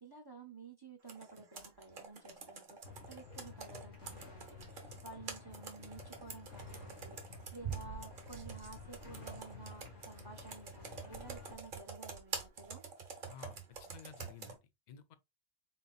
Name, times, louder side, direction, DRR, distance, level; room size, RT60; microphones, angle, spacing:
voice 1, 0.0-12.8, right 3 dB, 30° right, 0.4 m, -53 dB
Computer keyboard, 1.1-14.6, right 5 dB, 45° right, 1.0 m, -47 dB
sound 1, 2.8-11.5, left 4 dB, 85° left, 1.9 m, -52 dB
voice 2, 13.3-14.6 14.9-15.1, left 8 dB, 50° left, 0.6 m, -53 dB
4.0 x 3.9 x 2.3 m
omnidirectional pair, 1.2 m